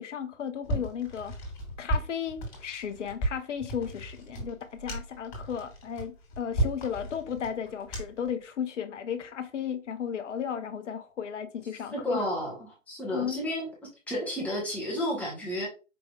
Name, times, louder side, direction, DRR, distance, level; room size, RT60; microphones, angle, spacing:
voice 1, 0.0-1.3 1.8-12.2 13.1-13.4, left 8 dB, 65° left, 0.8 m, -34 dB
sound 1, 0.6-8.3, right 1 dB, 20° left, 2.2 m, -34 dB
voice 2, 11.9-13.7 14.1-15.7, equal, 5° left, 0.9 m, -31 dB
5.2 x 3.3 x 2.3 m
hypercardioid pair, 140°, 40 cm